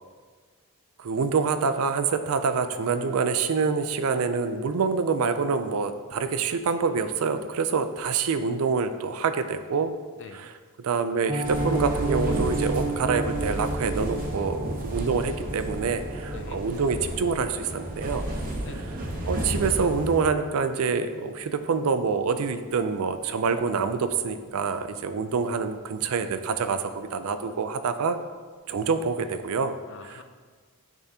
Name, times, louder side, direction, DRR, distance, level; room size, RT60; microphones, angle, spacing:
voice 1, 1.0-10.0 10.3-10.5 10.8-18.2 19.3-28.2 28.7-29.8 30.0-30.2, right 5 dB, 75° right, 10 dB, 0.4 m, -26 dB
voice 2, 10.2-10.5 16.3-16.6 18.6-19.0 29.9-30.2, left 4 dB, 60° left, 7 dB, 0.5 m, -44 dB
Piano, 11.3-22.2 22.4-22.7 23.0-23.1 23.5-23.7 24.0-24.1, right 2 dB, 15° right, 1.3 m, -34 dB
sound 1, 11.4-20.2, right 1 dB, 40° right, 0.8 m, -32 dB
10.0 x 3.6 x 2.8 m, 1.5 s
head